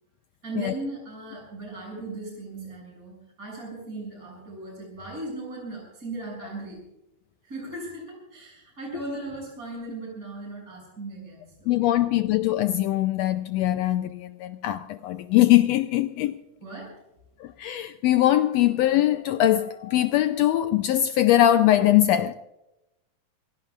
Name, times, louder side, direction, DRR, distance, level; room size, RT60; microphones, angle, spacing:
voice 1, 0.4-6.8 7.4-12.0 16.6-16.9, right 2 dB, 25° right, 7.5 m, -37 dB
voice 2, 11.7-16.3 17.4-22.3, left 13 dB, 85° left, 1.5 m, -21 dB
27.0 x 17.0 x 2.4 m
omnidirectional pair, 3.7 m